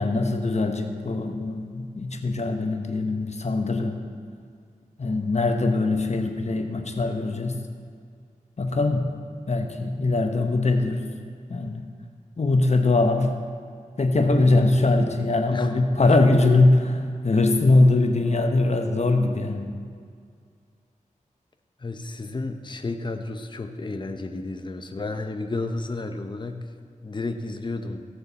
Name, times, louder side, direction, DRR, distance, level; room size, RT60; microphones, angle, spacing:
voice 1, 0.0-4.0 5.0-7.5 8.6-9.0 9.5-11.0 11.5-11.8 12.4-13.3 14.0-19.7, left 2 dB, 50° left, 4 dB, 1.2 m, -22 dB
voice 2, 15.5-16.2 21.8-26.7 27.0-28.0, left 2 dB, 30° left, 6 dB, 0.8 m, -32 dB
17.0 x 6.5 x 4.2 m, 2.2 s
cardioid pair, 50°, 14 cm